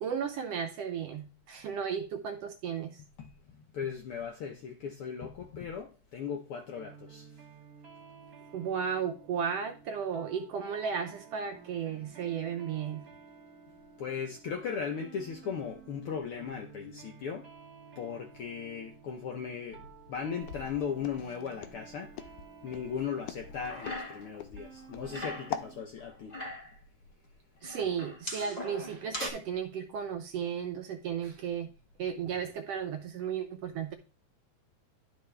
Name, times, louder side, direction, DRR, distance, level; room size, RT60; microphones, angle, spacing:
voice 1, 0.0-3.0 8.5-13.0 27.6-31.7 32.0-33.9, right 7 dB, 75° right, 1.6 m, -34 dB
voice 2, 3.2-7.4 14.0-17.5 18.0-22.1 22.6-26.4, left 7 dB, 70° left, 1.3 m, -37 dB
sound 1, 6.7-25.9, right 6 dB, 40° right, 1.4 m, -53 dB
Walk footsteps, 20.4-25.7, left 9 dB, 90° left, 2.1 m, -42 dB
sound 2, 23.5-24.4 24.7-25.6 26.1-26.8 27.6-29.3, left 1 dB, 35° left, 0.6 m, -40 dB
11.5 x 4.6 x 3.2 m
omnidirectional pair, 3.4 m